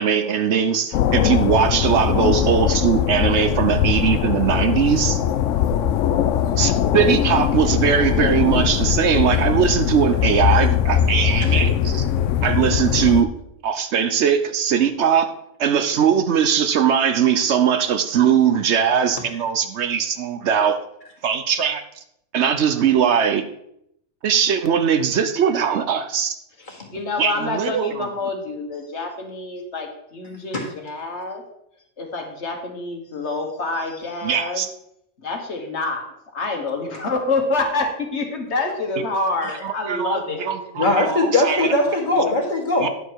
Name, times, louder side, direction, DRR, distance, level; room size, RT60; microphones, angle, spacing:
voice 1, 0.0-5.2 6.6-12.0 12.4-13.3 13.6-15.3 15.6-20.8 21.2-21.8 22.3-23.4 24.2-26.4 27.2-28.1 34.2-34.7 39.6-41.7 42.8-42.9, right 7 dB, 70° right, 9 dB, 1.0 m, -20 dB
sound 1, 0.9-13.2, left 9 dB, 80° left, 0.9 m, -20 dB
voice 2, 26.9-31.4 32.0-34.6 35.2-36.0 36.3-40.6, left 3 dB, 65° left, 3 dB, 1.7 m, -27 dB
voice 3, 40.8-42.9, left 2 dB, 40° left, 0 dB, 2.0 m, -20 dB
9.8 x 6.6 x 4.6 m, 0.75 s
omnidirectional pair, 1.3 m